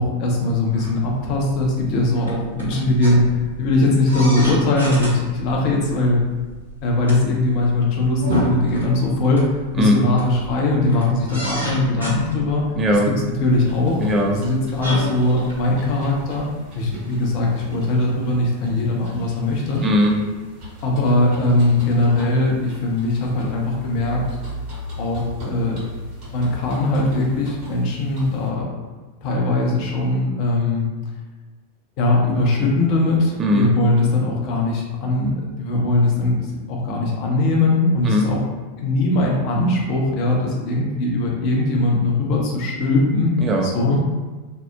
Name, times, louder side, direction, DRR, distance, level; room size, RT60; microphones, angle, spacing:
voice 1, 0.0-3.3 3.6-6.2 6.8-12.6 13.1-13.2 13.4-14.0 14.3-16.5 16.7-19.8 20.8-24.2 25.0-25.8 26.3-28.7 29.2-30.8 32.0-38.4 38.8-43.4 43.6-44.0, left 2 dB, 45° left, -2 dB, 0.6 m, -20 dB
sound 1, 0.7-16.4, right 1 dB, 80° right, 0.7 m, -31 dB
voice 2, 12.8-13.1 14.0-14.4 19.8-20.1 33.4-33.7 38.0-38.3 43.4-43.7, left 1 dB, 20° right, 1 dB, 0.4 m, -18 dB
sound 2, 13.5-28.5, right 1 dB, 45° right, 1.1 m, -38 dB
2.7 x 2.0 x 2.3 m, 1.3 s
figure-of-eight pair, 90°, 0 cm